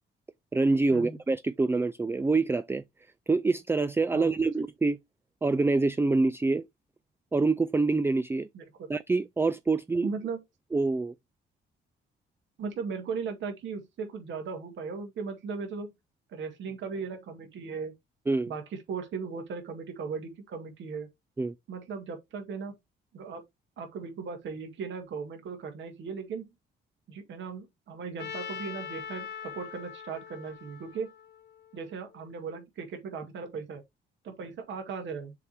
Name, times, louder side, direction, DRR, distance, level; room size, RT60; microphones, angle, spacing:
voice 1, 0.5-2.8 3.3-5.0 5.4-6.6 7.3-8.5 8.9-10.1 10.7-11.1 18.3-18.5 21.4-21.5, right 3 dB, 10° right, 0.3 m, -26 dB
voice 2, 8.5-8.9 10.0-10.4 12.6-15.9 16.3-17.9 18.5-21.1 21.7-22.8 23.1-23.4 23.8-26.5 27.1-31.1 31.7-33.8 34.2-35.3, right 5 dB, 70° right, 1.9 m, -37 dB
Trumpet, 28.2-32.2, left 8 dB, 55° left, 1.0 m, -42 dB
6.9 x 3.3 x 4.4 m
cardioid pair, 90°, 20 cm